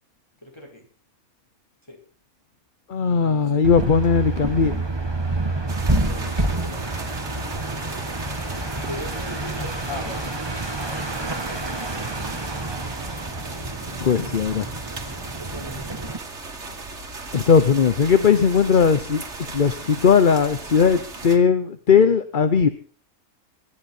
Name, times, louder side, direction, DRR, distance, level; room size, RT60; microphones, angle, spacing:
voice 1, 0.4-0.9 1.9-2.0 3.0-3.8 5.8-7.0 8.8-10.2 10.9-11.3 15.4-16.0, left 1 dB, 20° left, 0 dB, 5.7 m, -39 dB
voice 2, 2.9-4.8 13.9-14.7 17.3-22.7, left 6 dB, 40° left, 11 dB, 0.9 m, -18 dB
sound 1, 3.6-16.2, right 2 dB, 20° right, 1.3 m, -28 dB
sound 2, 5.7-21.4, right 3 dB, 50° right, 2.7 m, -37 dB
24.5 x 11.0 x 4.4 m, 0.42 s
omnidirectional pair, 1.5 m